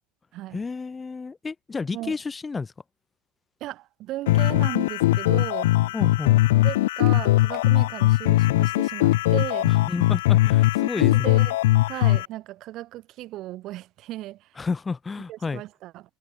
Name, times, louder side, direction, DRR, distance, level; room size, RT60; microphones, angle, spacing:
voice 1, 0.5-2.7 5.9-6.4 9.7-11.4 14.6-15.6, left 4 dB, 15° left, 3.6 m, -31 dB
voice 2, 3.6-5.7 6.6-9.7 11.0-11.6 11.8-14.5 15.3-16.0, right 16 dB, 50° right, 5.6 m, -36 dB
sound 1, 4.3-12.3, left 17 dB, 85° left, 0.4 m, -20 dB
Clapping, 7.1-7.2 7.5-7.8 8.6-8.8 9.1-9.3 10.2-10.3 10.6-10.8, left 11 dB, 40° left, 7.7 m, -54 dB
supercardioid pair, 115°, 0 cm